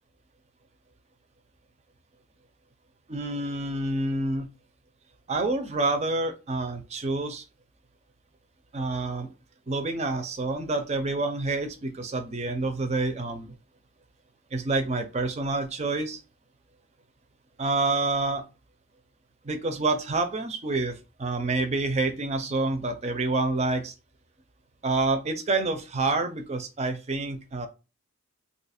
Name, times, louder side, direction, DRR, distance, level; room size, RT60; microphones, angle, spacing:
voice 1, 3.1-4.5 5.3-7.4 8.7-9.3 9.7-13.6 14.5-16.2 17.6-18.4 19.4-23.9 24.8-27.7, right 2 dB, 30° right, 6 dB, 0.4 m, -28 dB
2.8 x 2.3 x 4.2 m, 0.30 s
head